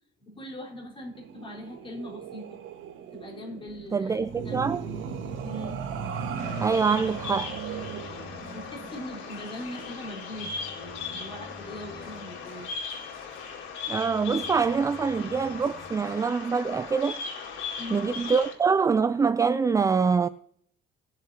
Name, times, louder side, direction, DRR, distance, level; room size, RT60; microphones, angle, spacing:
voice 1, 0.2-2.6 3.1-4.6 5.4-5.9 6.9-7.1 8.5-12.7 17.8-18.2, left 1 dB, 25° left, 4.2 m, -41 dB
sound 1, 1.2-10.1, right 6 dB, 80° right, 1.5 m, -38 dB
Organ, 3.1-16.3, left 3 dB, 45° left, 2.5 m, -49 dB
voice 2, 3.9-4.8 6.6-7.5 13.9-17.2 17.9-20.3, right 5 dB, 15° right, 0.3 m, -25 dB
Bird vocalization bird call bird song, 6.4-18.5, left 5 dB, 80° left, 3.6 m, -38 dB
20.0 x 7.3 x 2.9 m
cardioid pair, 125°, 20 cm